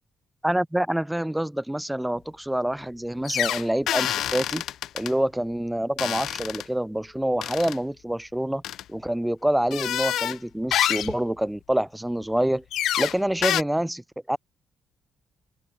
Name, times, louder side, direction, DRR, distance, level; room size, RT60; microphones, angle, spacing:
voice 1, 0.4-4.6 4.9-8.6 8.9-12.6 13.0-14.0 14.3-14.4, right 1 dB, 5° right, 3.8 m, -26 dB
sound 1, 3.2-5.1 6.0-6.6 7.4-7.8 8.6-8.8 9.7-10.4 10.7-11.2 12.7-13.2 13.4-13.6, left 12 dB, 80° left, 2.5 m, -27 dB
open air
cardioid pair, 90°, 0 cm